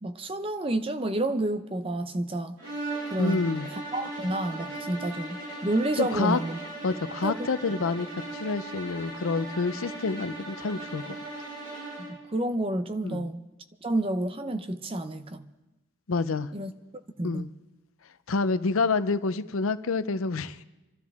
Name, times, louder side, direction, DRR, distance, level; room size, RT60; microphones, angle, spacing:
voice 1, 0.0-2.5 3.1-3.5 3.9-6.6 7.2-7.4 12.0-13.4 13.8-15.5 16.5-16.7 17.2-17.4, right 1 dB, 25° right, 9 dB, 0.7 m, -29 dB
sound 1, 2.6-12.3, right 2 dB, 75° right, 6.5 m, -38 dB
voice 2, 3.2-3.7 6.0-6.4 6.8-8.1 8.3-11.2 13.0-13.3 16.1-16.5 17.2-17.5 18.3-20.6, left 4 dB, 85° left, 13 dB, 0.6 m, -28 dB
27.0 x 12.5 x 3.6 m, 1.0 s
head